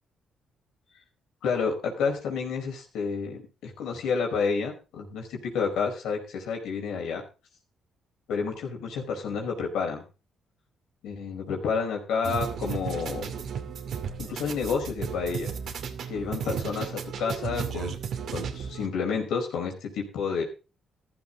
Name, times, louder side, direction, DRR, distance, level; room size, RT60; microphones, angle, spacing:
voice 1, 1.4-7.2 8.3-10.0 11.0-13.3 14.2-15.5 16.1-17.9 18.3-20.4, left 5 dB, 85° left, 3 dB, 4.9 m, -30 dB
sound 1, 12.2-18.9, right 7 dB, 70° right, 2.4 m, -34 dB
14.5 x 12.5 x 3.8 m, 0.32 s
cardioid pair, 90°, 0 cm